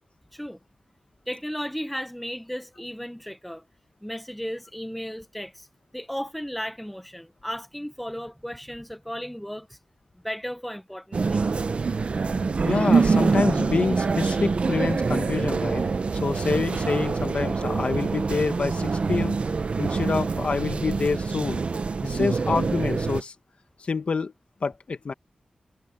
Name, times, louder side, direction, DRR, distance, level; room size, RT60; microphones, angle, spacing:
voice 1, 1.3-3.6 4.0-5.7 5.9-9.8 10.2-11.6, equal, ahead, 1.0 m, -35 dB
sound 1, 11.1-23.2, right 4 dB, 55° right, 0.9 m, -25 dB
voice 2, 12.6-15.8 16.2-19.4 19.8-21.6 22.0-23.3 23.8-24.3 24.6-25.1, left 4 dB, 55° left, 1.6 m, -27 dB
wide cardioid pair, 120°, 2 cm